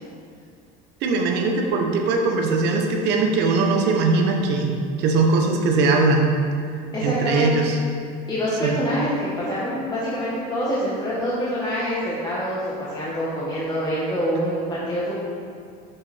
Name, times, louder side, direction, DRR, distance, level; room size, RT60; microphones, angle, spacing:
voice 1, 1.0-6.3 7.0-7.8 8.6-8.8, right 3 dB, 55° right, 2 dB, 0.9 m, -20 dB
voice 2, 6.9-7.5 8.3-15.1, equal, 20° left, -9 dB, 1.1 m, -26 dB
6.6 x 5.8 x 3.4 m, 2.3 s
cardioid pair, 150°, 21 cm